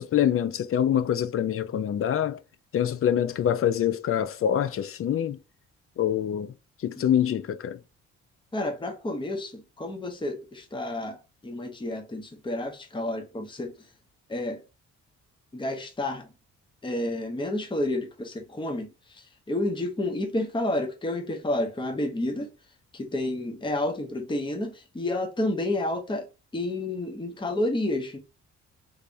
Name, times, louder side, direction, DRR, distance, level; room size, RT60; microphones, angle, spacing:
voice 1, 0.0-2.4 2.7-5.4 6.0-6.5 6.8-7.8, left 9 dB, 50° left, 0.5 m, -25 dB
voice 2, 8.5-11.2 11.4-13.7 14.3-14.6 15.5-16.3 16.8-22.5 22.9-26.3 26.5-28.2, left 1 dB, 15° left, 0.9 m, -30 dB
3.5 x 3.3 x 2.6 m
cardioid pair, 90°, 30 cm